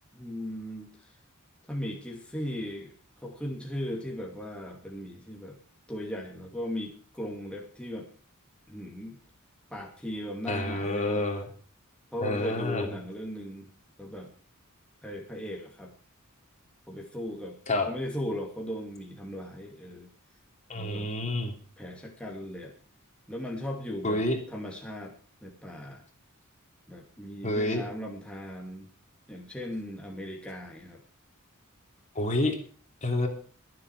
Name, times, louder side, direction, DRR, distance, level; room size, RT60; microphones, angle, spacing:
voice 1, 0.1-1.1 1.7-5.6 5.9-8.1 8.7-9.2 9.7-11.2 12.1-13.7 14.0-14.3 15.0-15.9 16.9-17.6 17.9-20.1 20.7-21.3 21.8-22.7 23.3-24.2 24.5-25.2 25.4-26.0 26.9-28.9 29.3-31.0, left 1 dB, 5° left, -1 dB, 2.6 m, -37 dB
voice 2, 10.5-11.5 12.2-12.9 17.7-17.9 20.7-21.5 24.0-24.4 27.4-27.8 32.1-32.6 33.0-33.3, left 1 dB, 35° left, 4 dB, 3.0 m, -28 dB
23.5 x 7.8 x 4.7 m, 0.40 s
head